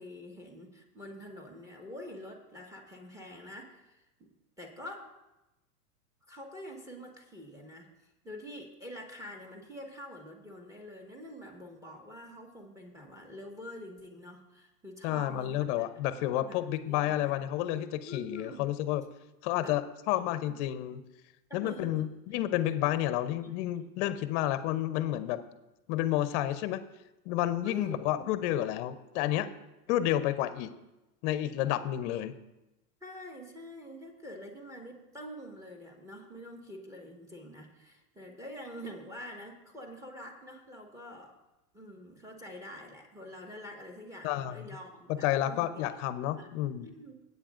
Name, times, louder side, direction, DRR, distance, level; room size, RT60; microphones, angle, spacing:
voice 1, 0.0-4.3 4.6-5.1 6.3-15.9 16.3-16.6 16.9-17.3 18.0-18.7 19.6-19.8 21.5-22.0 22.3-22.4 27.6-28.3 33.0-41.4 41.7-46.0 46.3-47.1, left 1 dB, 5° right, 1 dB, 1.6 m, -46 dB
voice 2, 15.0-19.0 19.4-21.0 21.5-25.4 25.9-26.8 27.3-29.5 29.9-30.7 31.2-32.4 44.2-44.8 45.1-46.9, left 13 dB, 50° left, 12 dB, 0.8 m, -30 dB
17.0 x 8.5 x 2.5 m, 0.98 s
hypercardioid pair, 115°, 47 cm